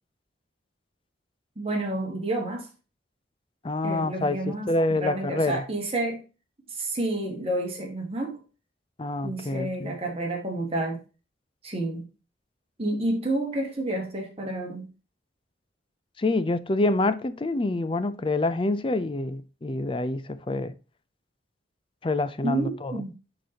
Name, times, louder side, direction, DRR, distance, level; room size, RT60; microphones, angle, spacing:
voice 1, 1.6-2.7 3.8-4.7 5.0-6.2 6.8-8.4 9.2-11.0 11.6-12.1 12.8-14.9 22.4-23.1, right 1 dB, 30° right, 1.6 m, -29 dB
voice 2, 3.6-5.6 9.0-10.0 16.2-20.7 22.0-23.0, left 2 dB, 25° left, 0.4 m, -27 dB
11.0 x 4.0 x 2.9 m
head